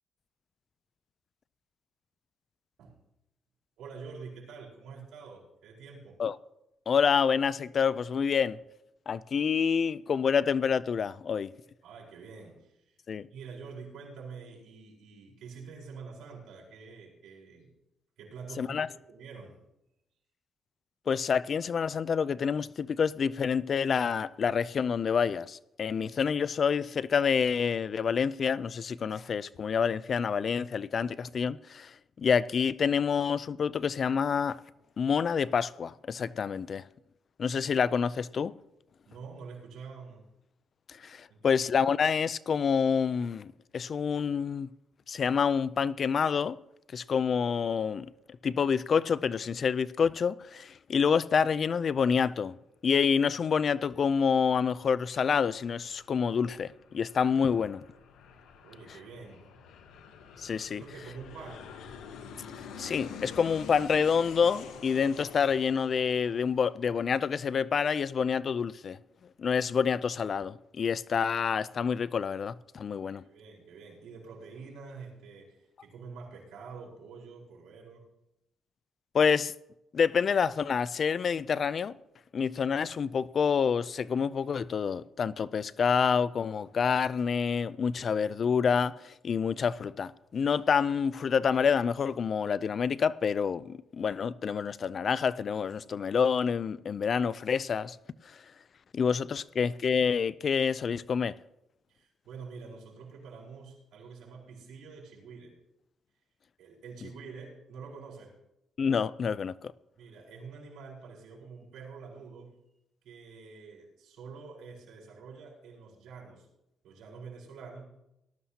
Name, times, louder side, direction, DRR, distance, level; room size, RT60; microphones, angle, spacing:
voice 1, 3.8-6.2 11.8-13.0 13.3-17.7 18.2-19.6 39.0-40.3 41.3-41.5 58.6-59.5 60.7-61.7 73.0-78.1 101.9-105.6 106.6-108.3 110.0-112.6 113.0-116.5 116.8-117.9, right 5 dB, 85° right, 4.4 m, -47 dB
voice 2, 6.9-8.6 9.1-11.5 13.1-13.3 18.6-18.9 21.1-34.6 35.0-36.9 37.4-38.5 40.9-44.7 45.1-46.6 46.9-48.1 48.4-52.6 52.8-57.8 60.4-60.8 62.5-69.0 69.4-73.2 79.1-79.5 79.9-81.9 82.3-98.0 98.2-98.4 98.9-101.3 108.8-109.7, left 6 dB, 50° left, 0.4 m, -28 dB
Aircraft, 54.8-67.3, left 6 dB, 90° left, 1.1 m, -48 dB
18.5 x 12.5 x 2.8 m
cardioid pair, 105°, 0 cm